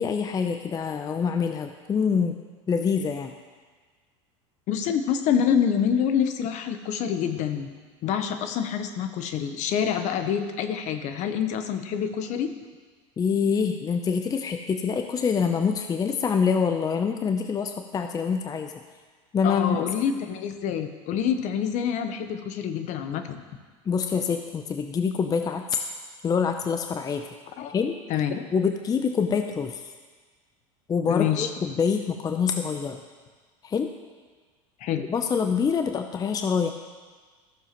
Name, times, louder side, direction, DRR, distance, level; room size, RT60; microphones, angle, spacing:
voice 1, 0.0-2.4 2.7-3.3 13.2-18.7 19.3-19.8 23.9-25.8 26.2-27.3 27.7-28.0 28.5-29.9 30.9-33.0 33.6-33.9 35.1-36.7, left 6 dB, 25° left, 7 dB, 0.5 m, -25 dB
voice 2, 4.7-7.7 8.0-12.5 19.4-23.4 27.6-27.8 28.1-28.5 31.1-31.5 34.8-35.0, left 8 dB, 50° left, 9 dB, 0.9 m, -26 dB
14.0 x 6.9 x 3.0 m, 1.4 s
hypercardioid pair, 95°, 16 cm